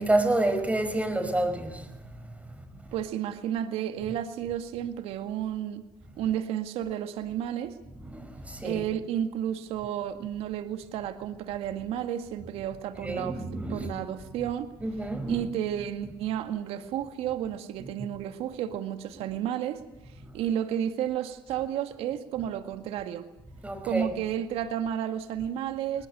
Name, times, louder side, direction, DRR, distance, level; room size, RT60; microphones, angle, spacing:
voice 1, 0.0-1.9 2.2-2.3 2.6-2.8 8.0-8.8 13.0-14.0 14.8-15.5 17.8-17.9 20.3-20.4 23.6-24.1, right 1 dB, 15° right, 5.3 m, -29 dB
voice 2, 2.9-5.8 6.2-7.7 8.6-13.4 13.7-14.7 15.3-19.8 20.3-23.3 23.8-26.1, right 10 dB, 75° right, 2.0 m, -32 dB
21.0 x 19.5 x 9.2 m
supercardioid pair, 60°, 10 cm